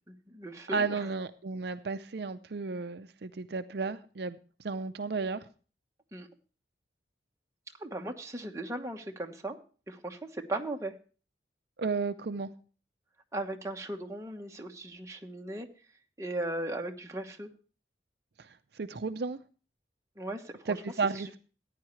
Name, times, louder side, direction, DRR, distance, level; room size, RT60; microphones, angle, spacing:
voice 1, 0.1-1.1 6.1-6.3 7.8-9.6 9.9-10.9 13.3-15.7 16.2-17.5 20.2-20.8 21.1-21.4, right 1 dB, 15° right, 3 dB, 1.1 m, -37 dB
voice 2, 0.7-4.4 4.6-5.4 11.8-12.5 18.4-19.4 20.7-21.4, right 4 dB, 60° right, 10 dB, 0.5 m, -33 dB
15.0 x 9.6 x 3.1 m, 0.37 s
head